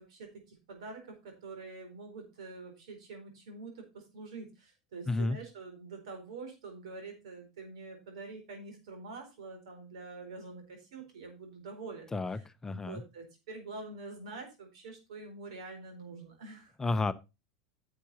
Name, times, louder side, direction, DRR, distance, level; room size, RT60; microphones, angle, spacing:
voice 1, 0.0-16.7, right 3 dB, 75° right, 4.4 m, -46 dB
voice 2, 5.1-5.4 12.1-13.0 16.8-17.1, left 3 dB, 15° left, 0.6 m, -31 dB
10.0 x 7.1 x 4.1 m
hypercardioid pair, 95°, 3 cm